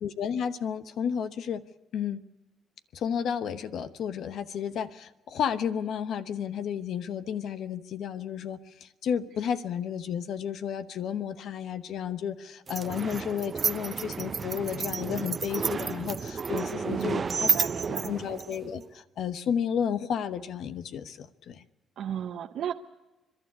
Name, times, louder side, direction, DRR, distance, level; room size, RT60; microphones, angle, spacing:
voice 1, 0.0-1.6 1.9-2.2 2.9-17.6 17.9-21.6, left 8 dB, 70° left, 12 dB, 1.0 m, -32 dB
sound 1, 12.7-18.9, right 5 dB, 40° right, 0.7 m, -31 dB
voice 2, 16.9-18.1 22.0-22.7, right 9 dB, 70° right, 4 dB, 0.9 m, -34 dB
30.0 x 11.5 x 9.6 m, 1.1 s
cardioid pair, 90°, 0 cm